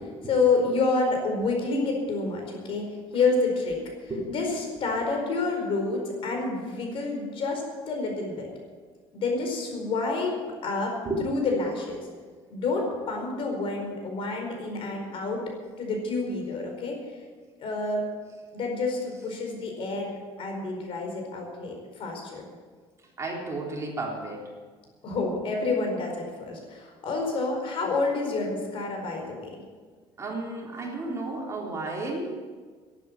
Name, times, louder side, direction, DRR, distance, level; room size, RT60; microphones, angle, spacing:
voice 1, 0.2-8.5 9.1-10.9 11.2-12.1 12.5-15.4 15.8-17.0 17.6-18.0 18.5-22.4 25.0-29.5, left 3 dB, 55° left, 2 dB, 4.7 m, -28 dB
voice 2, 23.2-24.5 30.2-32.4, right 2 dB, 25° right, -2 dB, 3.8 m, -32 dB
12.0 x 11.0 x 8.6 m, 1.5 s
cardioid pair, 115°, 11 cm